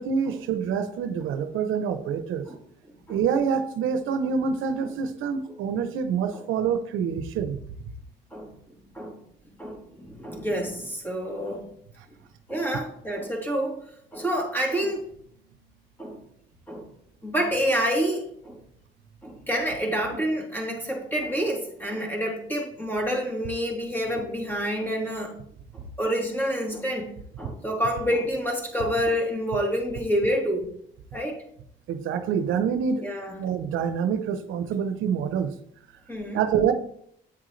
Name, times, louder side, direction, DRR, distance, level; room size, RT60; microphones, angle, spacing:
voice 1, 0.0-2.4 3.1-7.6 31.9-33.0 33.4-35.5 36.3-36.7, right 7 dB, 85° right, 10 dB, 0.8 m, -26 dB
voice 2, 9.6-11.7 12.5-13.8 14.1-15.1 16.0-16.2 16.7-16.9 17.2-18.6 19.2-25.4 25.7-30.7 31.1-31.4 33.0-33.4 36.1-36.4, equal, 10° left, -1 dB, 3.1 m, -28 dB
9.0 x 7.6 x 3.2 m, 0.68 s
cardioid pair, 90°, 20 cm